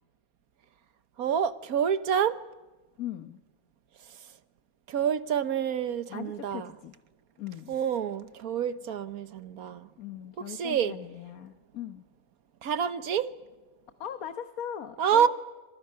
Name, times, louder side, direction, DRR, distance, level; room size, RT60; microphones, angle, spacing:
voice 1, 1.2-2.4 4.0-4.4 4.9-6.7 7.7-9.9 10.4-11.0 12.6-13.3 15.0-15.3, right 8 dB, 80° right, 1.5 m, -28 dB
voice 2, 3.0-3.4 6.1-6.9 7.4-7.8 10.0-12.0 14.0-15.3, left 10 dB, 75° left, 1.5 m, -39 dB
28.5 x 27.0 x 5.7 m
omnidirectional pair, 1.5 m